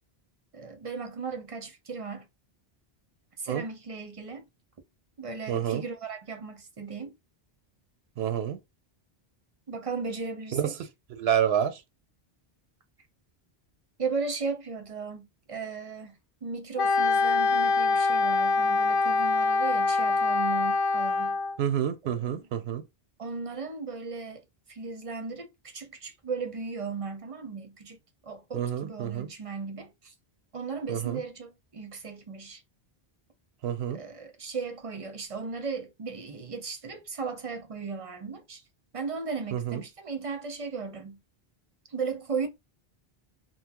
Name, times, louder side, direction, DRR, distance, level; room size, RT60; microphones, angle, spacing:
voice 1, 0.5-2.3 3.4-4.4 5.2-7.1 9.7-10.7 14.0-16.2 16.4-21.4 22.0-22.3 23.2-24.4 24.7-30.1 30.5-32.6 33.9-38.6 38.9-41.2 41.9-42.5, right 4 dB, 40° right, 0.6 m, -36 dB
voice 2, 5.5-5.8 8.2-8.6 10.5-10.7 11.2-11.8 21.6-22.8 28.5-29.3 30.9-31.2 33.6-34.0 39.5-39.8, right 9 dB, 80° right, 0.8 m, -28 dB
Wind instrument woodwind instrument, 16.8-21.6, left 3 dB, 65° left, 0.7 m, -24 dB
3.8 x 2.0 x 2.9 m
omnidirectional pair, 1.0 m